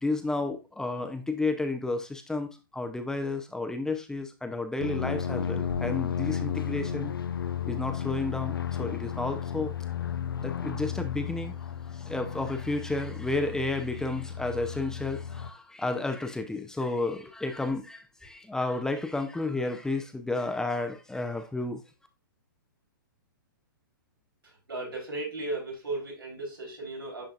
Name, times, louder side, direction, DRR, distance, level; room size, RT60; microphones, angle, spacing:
voice 1, 0.0-7.1 7.7-9.7 10.4-11.5 11.9-21.8, left 2 dB, 5° left, 6 dB, 0.7 m, -32 dB
sound 1, 4.8-15.5, left 8 dB, 85° left, 0.6 m, -33 dB
voice 2, 24.4-27.2, right 2 dB, 85° right, -3 dB, 3.9 m, -36 dB
10.5 x 3.8 x 2.5 m, 0.27 s
hypercardioid pair, 120°, 12 cm